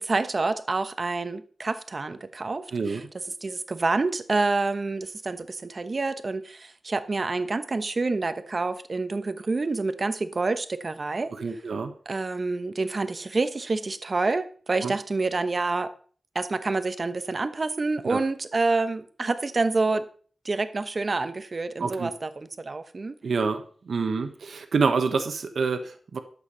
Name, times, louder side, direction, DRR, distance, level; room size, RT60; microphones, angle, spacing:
voice 1, 0.0-3.0 3.4-11.3 12.1-15.9 16.3-20.1 20.4-23.2, right 3 dB, 40° right, 11 dB, 1.0 m, -28 dB
voice 2, 11.4-11.9 14.8-14.9 18.0-18.2 21.8-22.1 23.2-26.2, right 4 dB, 70° right, 7 dB, 1.2 m, -27 dB
12.0 x 8.1 x 5.4 m, 0.44 s
wide cardioid pair, 105°, 0 cm